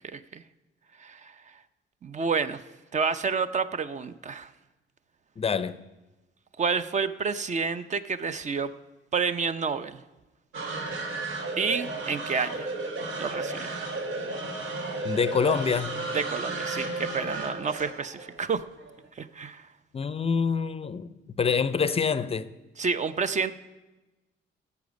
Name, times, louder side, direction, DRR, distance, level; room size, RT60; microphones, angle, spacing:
voice 1, 0.1-0.4 1.0-1.6 2.0-2.6 2.9-4.5 6.6-8.7 9.1-10.0 11.6-12.7 13.2-13.8 16.1-18.6 19.2-19.7 22.8-23.5, right 5 dB, 35° right, 0.5 m, -29 dB
voice 2, 5.4-5.8 15.0-16.0 19.9-22.5, left 6 dB, 30° left, 0.5 m, -26 dB
sound 1, 10.5-18.9, right 2 dB, 90° right, 1.5 m, -33 dB
16.0 x 7.0 x 5.2 m
cardioid pair, 90°, 20 cm